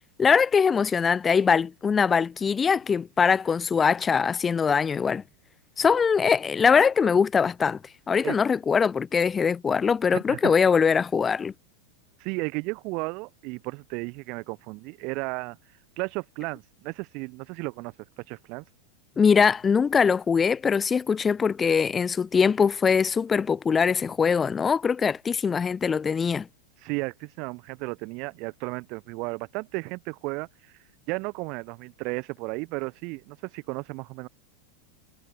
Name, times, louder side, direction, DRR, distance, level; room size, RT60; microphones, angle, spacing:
voice 1, 0.2-5.2 5.8-7.8 8.1-11.5 19.2-26.5, left 6 dB, 20° left, 0.8 m, -22 dB
voice 2, 10.1-10.5 12.2-15.6 16.0-17.9 18.3-18.6 26.8-30.5 31.1-34.3, right 28 dB, 45° right, 1.0 m, -34 dB
figure-of-eight pair, 90°, 0 cm